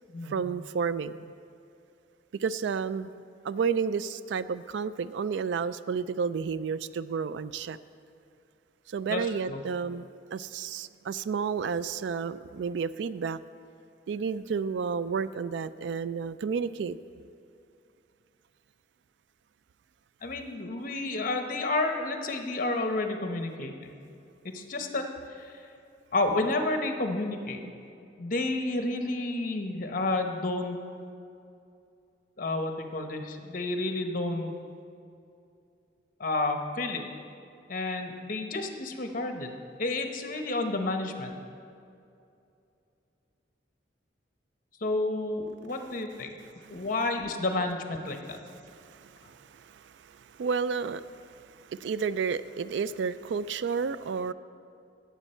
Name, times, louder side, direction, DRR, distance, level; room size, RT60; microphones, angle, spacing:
voice 1, 0.2-1.2 2.3-3.1 3.4-7.8 8.9-13.4 14.1-17.0 46.6-46.8 48.7-54.3, right 6 dB, 75° right, 15 dB, 0.3 m, -31 dB
voice 2, 9.1-9.6 20.2-23.9 24.5-25.0 25.4-25.6 26.1-27.6 28.2-30.8 32.4-34.5 36.2-37.0 37.7-39.5 39.8-41.3 44.8-46.4 46.7-48.4, left 2 dB, 50° left, 5 dB, 0.9 m, -30 dB
17.0 x 7.2 x 4.4 m, 2.6 s
head